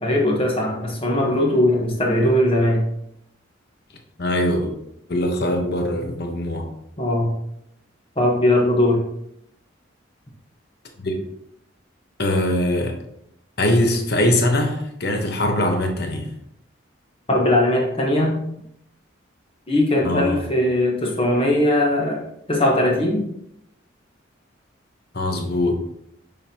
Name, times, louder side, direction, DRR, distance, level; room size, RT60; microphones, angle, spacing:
voice 1, 0.0-2.8 7.0-7.3 8.2-9.0 17.3-18.4 19.7-22.2 22.5-23.2, left 1 dB, 30° left, 0 dB, 1.2 m, -19 dB
voice 2, 4.2-4.7 5.1-6.7 11.0-11.1 12.2-12.9 13.6-16.3 20.0-20.4 25.1-25.8, left 1 dB, 55° left, 3 dB, 1.0 m, -22 dB
7.1 x 5.4 x 2.9 m, 0.76 s
head